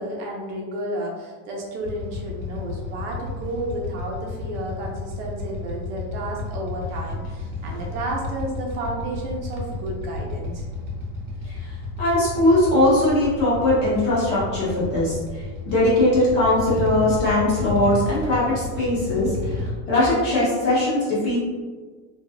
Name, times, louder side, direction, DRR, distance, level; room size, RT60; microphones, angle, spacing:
voice 1, 0.0-10.7, right 1 dB, 55° right, -2 dB, 0.7 m, -32 dB
Motorcycle / Idling, 1.8-19.7, left 3 dB, 90° right, 0.7 m, -32 dB
voice 2, 12.0-19.6 19.9-21.4, left 1 dB, 25° left, -7 dB, 0.5 m, -20 dB
2.7 x 2.4 x 2.3 m, 1.4 s
supercardioid pair, 180°, 41 cm